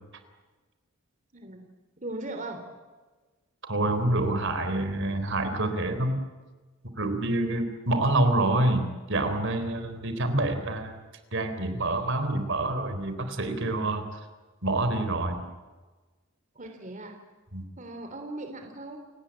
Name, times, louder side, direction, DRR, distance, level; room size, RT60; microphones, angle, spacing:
voice 1, 2.0-2.6 16.5-17.2 17.8-19.0, right 2 dB, 35° right, 5 dB, 3.2 m, -38 dB
voice 2, 3.6-6.2 7.0-11.0 11.3-14.1 14.6-15.4 17.5-17.6, right 2 dB, 55° right, 8 dB, 3.8 m, -27 dB
29.5 x 19.0 x 8.8 m, 1.3 s
head